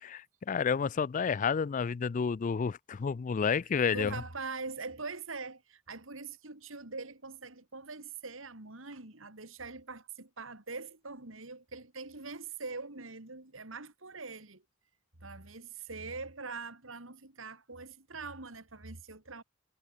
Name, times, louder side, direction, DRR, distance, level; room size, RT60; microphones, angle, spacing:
voice 1, 0.0-4.1, left 6 dB, 40° left, 0.3 m, -30 dB
voice 2, 3.9-14.6 15.2-19.4, right 4 dB, 75° right, 3.0 m, -43 dB
head